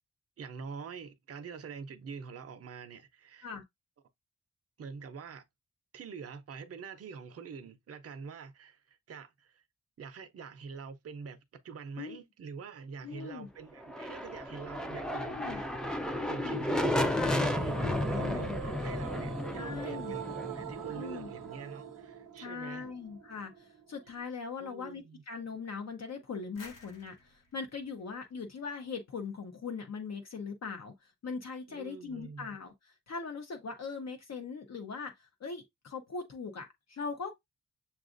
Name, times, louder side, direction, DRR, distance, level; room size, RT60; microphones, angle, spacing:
voice 1, 0.4-3.5 4.8-5.4 5.9-9.6 10.0-11.4 11.6-22.9 24.6-25.2 31.7-32.5, right 5 dB, 50° right, 0.6 m, -45 dB
voice 2, 13.0-13.5 15.2-15.6 16.1-16.6 17.1-17.4 18.2-18.5 19.5-20.2 20.9-21.3 22.4-37.4, left 5 dB, 55° left, 0.7 m, -41 dB
sound 1, 13.8-21.6, left 1 dB, ahead, 0.4 m, -33 dB
sound 2, 17.2-24.2, right 8 dB, 80° right, 0.7 m, -44 dB
sound 3, 26.6-29.3, left 3 dB, 80° left, 1.0 m, -55 dB
6.9 x 2.4 x 2.5 m
wide cardioid pair, 145°, 31 cm